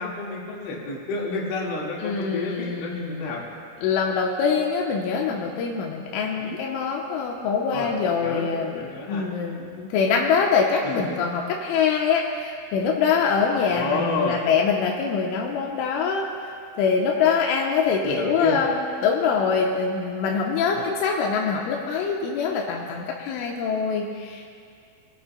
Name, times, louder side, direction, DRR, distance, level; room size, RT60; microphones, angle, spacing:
voice 1, 0.0-3.4 6.3-6.6 7.7-9.2 10.9-11.2 13.4-14.4 18.0-18.7 20.7-20.9, left 3 dB, 70° left, -4 dB, 4.1 m, -30 dB
voice 2, 2.0-3.4 3.8-16.3 16.7-24.5, left 6 dB, 90° left, -1 dB, 3.3 m, -24 dB
22.0 x 11.5 x 2.2 m, 2.2 s
omnidirectional pair, 5.7 m